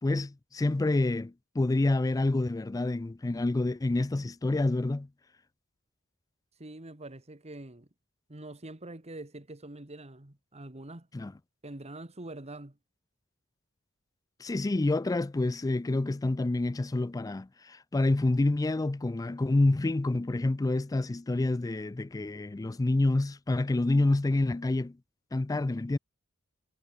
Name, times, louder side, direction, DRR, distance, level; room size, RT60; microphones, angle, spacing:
voice 1, 0.0-5.1 11.1-11.3 14.4-25.0 25.3-26.0, left 2 dB, 15° left, 0.4 m, -28 dB
voice 2, 6.6-7.9 8.3-11.1 11.6-12.8, right 2 dB, 30° right, 1.9 m, -44 dB
head